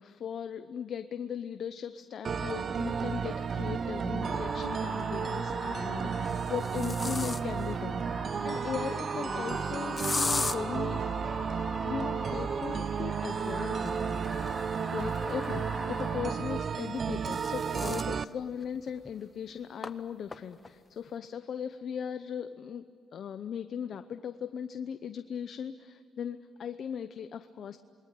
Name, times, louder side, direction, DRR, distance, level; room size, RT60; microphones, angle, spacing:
voice 1, 0.0-11.0 11.8-14.2 14.9-22.8 23.1-27.8, left 8 dB, 60° left, 10 dB, 0.8 m, -38 dB
sound 1, 2.2-18.2, right 6 dB, 50° right, 0.7 m, -33 dB
sound 2, 3.6-3.7 5.1-5.5 6.1-7.7 10.0-10.6 13.2-15.8 16.8-18.1 18.6-18.7 19.0-19.1 19.8-19.9 20.3-20.7, left 3 dB, 30° left, 1.0 m, -37 dB
sound 3, 4.2-16.3, right 2 dB, 30° right, 4.1 m, -40 dB
28.0 x 21.5 x 9.2 m, 2.3 s
cardioid pair, 90°, 0 cm